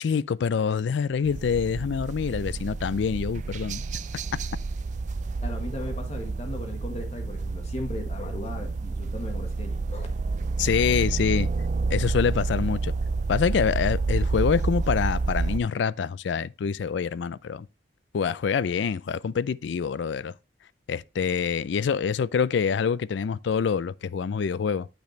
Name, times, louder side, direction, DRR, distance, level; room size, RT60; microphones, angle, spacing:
voice 1, 0.0-3.8 10.6-11.5 11.9-12.9 13.3-17.7 18.1-20.3 20.9-24.9, left 6 dB, 70° left, 0.4 m, -26 dB
sound 1, 1.3-15.6, right 3 dB, 40° right, 0.4 m, -29 dB
voice 2, 5.4-10.1, left 2 dB, 35° left, 1.3 m, -37 dB
9.0 x 5.2 x 3.1 m
head